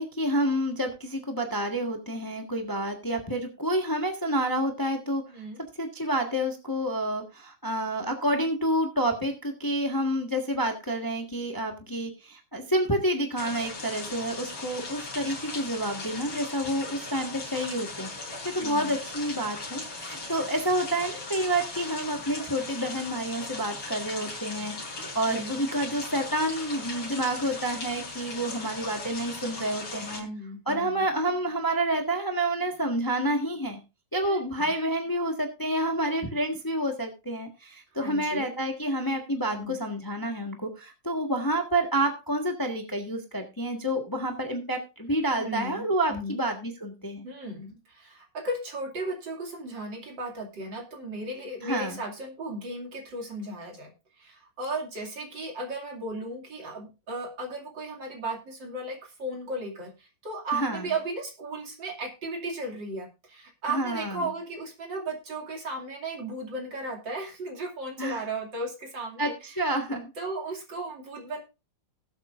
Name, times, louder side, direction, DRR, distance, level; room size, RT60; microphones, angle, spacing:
voice 1, 0.0-5.2 5.8-18.1 18.5-30.3 30.7-33.8 34.1-47.3 51.6-52.0 60.5-60.8 63.7-64.3 68.0-68.2 69.2-70.1, right 1 dB, 10° left, 3 dB, 1.4 m, -29 dB
sound 1, 13.4-30.2, left 3 dB, 75° left, 4.3 m, -38 dB
voice 2, 18.6-18.9 25.3-25.5 30.2-31.0 34.2-34.7 38.0-38.5 39.5-39.8 45.4-46.4 47.2-53.9 54.2-69.6 70.2-71.4, right 2 dB, 60° right, 1 dB, 3.3 m, -35 dB
19.5 x 8.2 x 2.6 m, 0.28 s
omnidirectional pair, 2.3 m